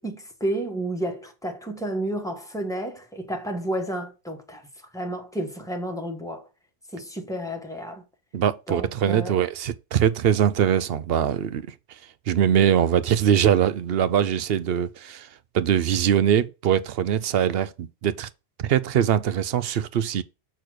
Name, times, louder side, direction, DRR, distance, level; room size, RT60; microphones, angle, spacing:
voice 1, 0.0-4.6 4.9-6.5 6.9-8.0 8.7-9.4, right 1 dB, 5° left, 1.4 m, -31 dB
voice 2, 8.3-11.7 12.3-15.3 15.5-18.3 18.6-20.2, right 9 dB, 65° right, 0.8 m, -22 dB
6.6 x 4.1 x 6.4 m
omnidirectional pair, 1.1 m